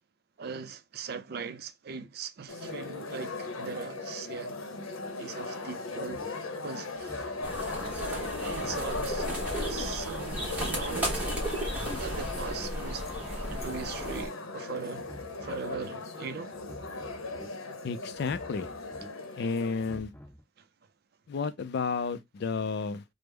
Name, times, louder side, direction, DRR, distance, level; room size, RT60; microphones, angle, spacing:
voice 1, 0.4-4.6 5.2-6.3 6.6-7.3 8.4-11.4 12.0-13.0 13.5-15.1 15.4-16.6, right 6 dB, 50° right, 0.4 m, -40 dB
sound 1, 2.5-20.0, left 3 dB, 90° left, 0.7 m, -38 dB
sound 2, 6.1-6.3 6.9-7.9 8.5-9.5 10.1-11.1 11.7-12.7 13.3-14.3 14.9-15.9 16.5-17.5 18.1-19.1 19.7-20.4, equal, 10° left, 1.3 m, -49 dB
sound 3, 7.4-14.3, right 1 dB, 10° right, 1.0 m, -35 dB
voice 2, 17.8-18.7 19.4-20.1 21.3-23.0, left 4 dB, 55° left, 0.3 m, -31 dB
3.4 x 2.0 x 3.2 m
head